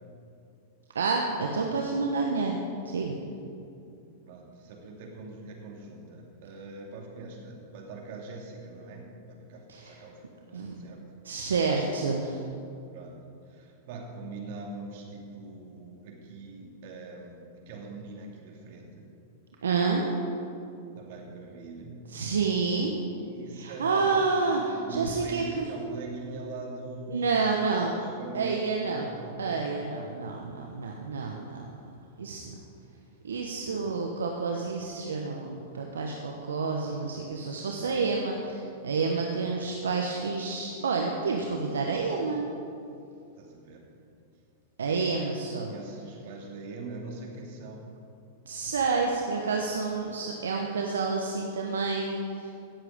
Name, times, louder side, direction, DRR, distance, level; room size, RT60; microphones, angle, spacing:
voice 1, 0.9-2.6 2.8-3.2 9.7-9.9 10.5-10.8 11.2-12.4 19.6-20.1 22.1-22.9 23.5-25.7 27.1-27.9 28.3-29.1 29.4-31.7 32.2-32.5 33.2-42.5 44.8-45.7 48.5-52.5, right 4 dB, 80° right, 1 dB, 1.1 m, -29 dB
voice 2, 4.3-11.0 12.9-13.2 13.5-19.1 20.9-22.0 23.2-24.1 24.5-27.3 27.7-29.4 33.7-33.9 43.4-43.8 45.7-47.8, right 3 dB, 60° right, 0 dB, 2.5 m, -42 dB
16.5 x 7.7 x 5.1 m, 2.6 s
hypercardioid pair, 105°, 0 cm